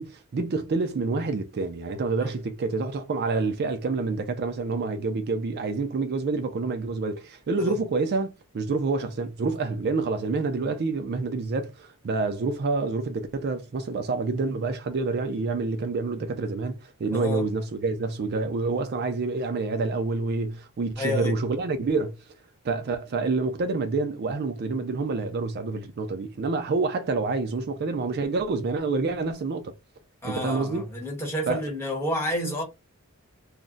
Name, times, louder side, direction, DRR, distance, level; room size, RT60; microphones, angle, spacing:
voice 1, 0.0-22.2 22.6-29.7 30.2-30.8 31.5-31.7, right 3 dB, 45° right, 0.4 m, -28 dB
voice 2, 17.1-17.5 21.0-21.3 30.2-32.6, left 1 dB, 10° left, 1.0 m, -30 dB
2.4 x 2.1 x 3.8 m
head